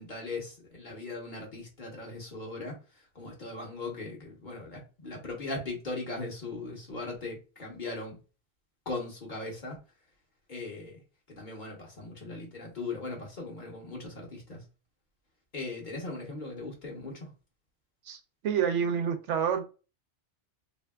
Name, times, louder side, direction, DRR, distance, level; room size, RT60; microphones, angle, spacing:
voice 1, 0.0-2.8 3.1-8.2 8.9-9.8 10.5-11.0 11.3-14.6 15.5-17.3, left 3 dB, 45° left, 1.1 m, -39 dB
voice 2, 18.1-19.6, right 7 dB, 85° right, 0.9 m, -28 dB
3.3 x 2.7 x 2.2 m
omnidirectional pair, 1.2 m